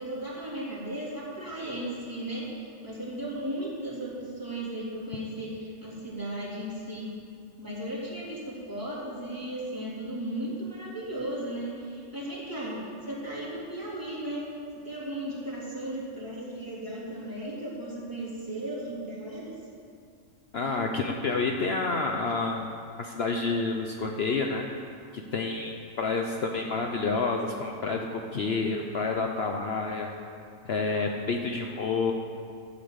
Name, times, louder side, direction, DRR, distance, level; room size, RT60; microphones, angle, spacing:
voice 1, 0.0-7.1 7.6-14.5 14.8-19.6, right 1 dB, 15° right, -8 dB, 3.6 m, -36 dB
voice 2, 20.5-22.7 23.0-24.7 25.1-30.1 30.6-32.1, left 4 dB, 55° left, 2 dB, 1.0 m, -29 dB
12.5 x 8.6 x 8.1 m, 2.4 s
omnidirectional pair, 1.4 m